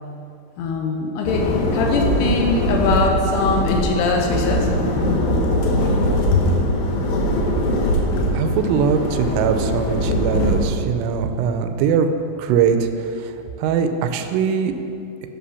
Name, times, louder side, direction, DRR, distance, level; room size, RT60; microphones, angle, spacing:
voice 1, 0.6-4.7 4.9-5.4 5.8-5.9 6.3-6.4, left 4 dB, 90° left, 1 dB, 2.3 m, -22 dB
sound 1, 1.2-10.6, equal, 70° left, 3.0 m, -21 dB
voice 2, 8.3-12.1 12.4-12.9 13.2-13.3 13.6-14.7, right 7 dB, 85° right, 7 dB, 3.2 m, -21 dB
13.0 x 5.7 x 5.6 m, 2.6 s
omnidirectional pair, 5.8 m